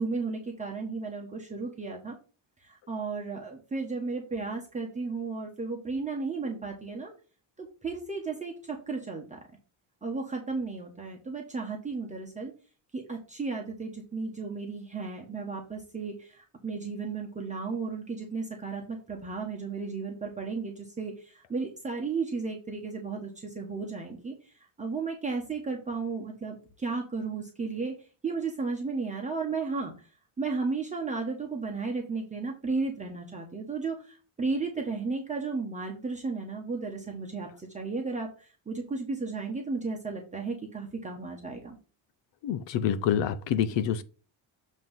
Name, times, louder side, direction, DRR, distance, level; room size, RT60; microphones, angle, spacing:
voice 1, 0.0-2.2 2.6-7.1 7.6-9.4 10.0-12.5 12.9-24.5 24.8-27.9 28.2-29.9 30.4-41.8, right 4 dB, 15° right, 1.1 m, -34 dB
voice 2, 42.4-44.0, left 9 dB, 85° left, 0.8 m, -27 dB
7.6 x 3.1 x 5.4 m
cardioid pair, 155°, 43 cm